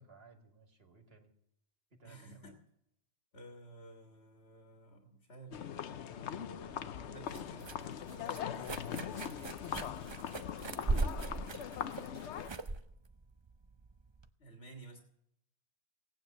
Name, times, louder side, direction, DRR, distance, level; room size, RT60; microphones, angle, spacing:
voice 1, 0.0-1.3 2.0-2.6 6.4-6.5 10.6-11.7, right 4 dB, 60° right, 4 dB, 2.2 m, -60 dB
voice 2, 2.0-2.6 3.3-9.5 14.4-15.0, right 1 dB, 70° left, 2 dB, 1.9 m, -53 dB
sound 1, 5.5-12.5, left 9 dB, 85° left, 1.0 m, -41 dB
sound 2, 6.5-14.3, right 3 dB, 30° right, 0.6 m, -40 dB
17.5 x 9.3 x 6.7 m, 0.79 s
omnidirectional pair, 1.1 m